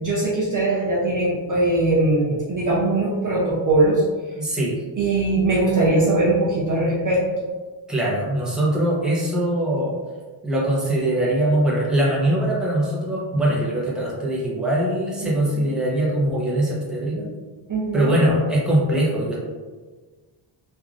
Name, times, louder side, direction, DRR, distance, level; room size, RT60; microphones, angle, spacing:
voice 1, 0.0-4.0 5.0-7.5 15.2-15.6 17.7-18.1, right 2 dB, 40° right, -5 dB, 0.6 m, -21 dB
voice 2, 4.4-4.8 7.9-9.9 10.4-17.3 17.9-19.4, right 1 dB, ahead, -6 dB, 0.7 m, -22 dB
3.3 x 2.4 x 2.4 m, 1.4 s
wide cardioid pair, 115°, 49 cm